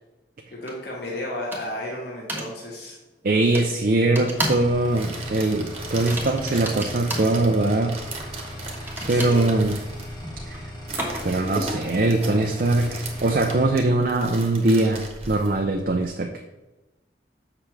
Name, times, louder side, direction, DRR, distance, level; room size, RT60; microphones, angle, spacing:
voice 1, 0.5-3.0 9.1-9.6, left 1 dB, 65° left, -4 dB, 1.8 m, -33 dB
sound 1, 0.7-0.8 1.5-1.9 2.3-2.5 3.5-3.7 4.1-4.7 5.0-5.3 5.9-7.3 8.7-11.5, right 1 dB, 10° right, 1.4 m, -32 dB
voice 2, 3.2-8.0 9.1-9.7 10.5-10.6 11.2-16.3, right 2 dB, 50° right, 2 dB, 0.6 m, -22 dB
sound 2, 4.4-13.7, equal, 25° left, 1.4 m, -39 dB
sound 3, 4.7-16.1, right 2 dB, 35° right, 1.3 m, -37 dB
7.8 x 5.9 x 3.4 m, 1.1 s
head